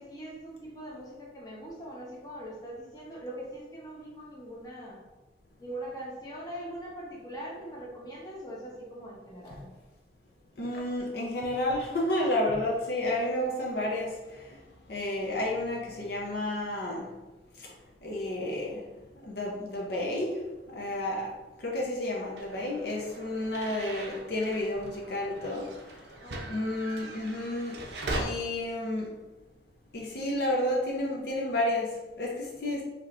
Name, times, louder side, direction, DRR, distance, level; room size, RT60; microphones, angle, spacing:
voice 1, 0.0-5.0 5.6-9.7 26.2-26.6, right 1 dB, 20° left, -5 dB, 0.9 m, -42 dB
voice 2, 10.6-14.6 14.9-17.1 17.6-17.7 18.0-18.8 19.2-20.4 20.7-21.3 21.6-25.7 26.5-27.8 28.1-29.1 29.9-31.9 32.2-32.8, left 1 dB, 60° left, -3 dB, 0.7 m, -31 dB
sound 1, 22.4-28.2, right 2 dB, 70° right, 0.6 m, -40 dB
4.9 x 3.0 x 2.5 m, 1.1 s
head